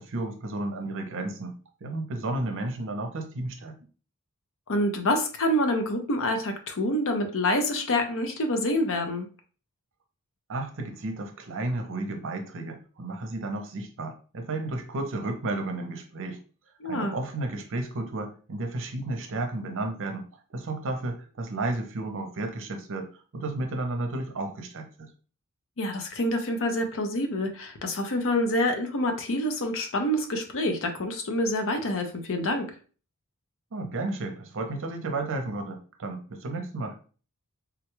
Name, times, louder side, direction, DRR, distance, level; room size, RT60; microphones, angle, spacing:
voice 1, 0.0-3.8 10.5-16.4 16.8-25.1 33.7-37.0, right 2 dB, 60° right, 5 dB, 0.7 m, -33 dB
voice 2, 4.7-9.3 16.8-17.2 25.8-32.7, left 1 dB, 60° left, 5 dB, 0.7 m, -27 dB
3.5 x 2.3 x 3.0 m, 0.38 s
head